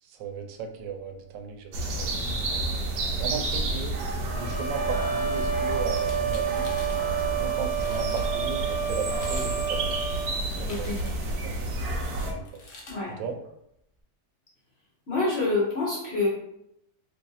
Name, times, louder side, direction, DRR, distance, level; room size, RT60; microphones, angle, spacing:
voice 1, 0.0-2.6 3.2-3.9 4.3-6.7 7.2-10.0 10.6-12.6 13.1-13.4, right 5 dB, 90° right, 5 dB, 1.2 m, -37 dB
sound 1, 1.7-12.3, right 2 dB, 70° right, 1.0 m, -30 dB
sound 2, 4.3-10.3, right 7 dB, 35° right, 1.0 m, -30 dB
sound 3, 6.0-7.0 7.5-7.6 7.8-8.3 9.0-9.5 9.8-11.3 12.4-13.0, left 2 dB, 70° left, 0.5 m, -46 dB
voice 2, 10.7-11.0 12.9-13.1 15.1-16.3, left 3 dB, 45° left, -5 dB, 0.9 m, -27 dB
3.0 x 2.5 x 3.9 m, 0.79 s
omnidirectional pair, 1.9 m